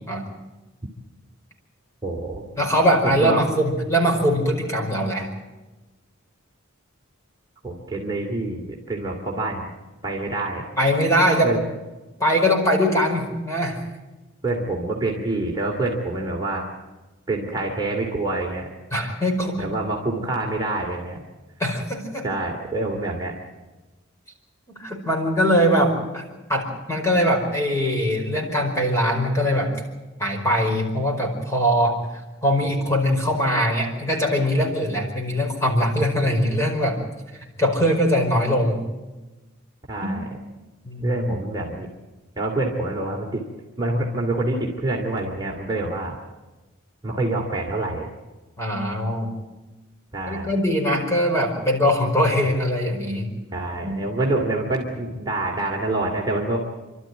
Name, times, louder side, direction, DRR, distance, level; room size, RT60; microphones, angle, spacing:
voice 1, 2.0-2.4 3.0-3.4 7.6-9.7 10.0-10.6 11.4-11.6 14.4-16.7 17.3-18.7 19.6-21.2 22.2-23.3 39.9-40.3 41.0-41.9 42.4-43.4 43.8-46.2 47.0-48.1 50.1-50.5 53.5-56.7, right 2 dB, 20° right, -2 dB, 2.6 m, -26 dB
voice 2, 2.6-5.3 10.8-11.5 12.2-13.8 18.9-19.7 21.6-22.3 24.7-26.2 26.5-29.7 30.2-32.0 32.4-37.0 37.6-38.8 40.0-40.2 40.8-41.2 48.6-49.4 50.3-53.3 53.8-54.0, equal, 15° left, 1 dB, 5.1 m, -21 dB
29.0 x 13.0 x 9.3 m, 1.1 s
head